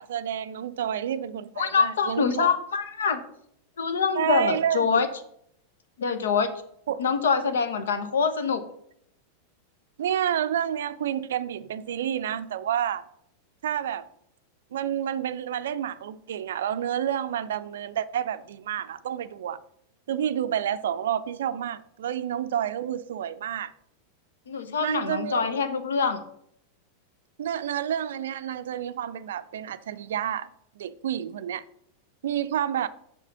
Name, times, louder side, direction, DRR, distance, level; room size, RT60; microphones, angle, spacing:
voice 1, 0.0-2.5 4.2-4.9 6.9-7.0 10.0-13.0 13.6-14.1 14.7-19.6 20.1-23.7 24.8-25.5 27.4-30.5 30.8-31.6 32.2-32.9, right 10 dB, 60° right, 0.4 m, -29 dB
voice 2, 1.6-3.2 3.8-5.1 6.0-6.5 7.0-8.6 24.5-26.2, left 5 dB, 65° left, 0.9 m, -25 dB
7.2 x 5.4 x 5.5 m
figure-of-eight pair, 90°, 0 cm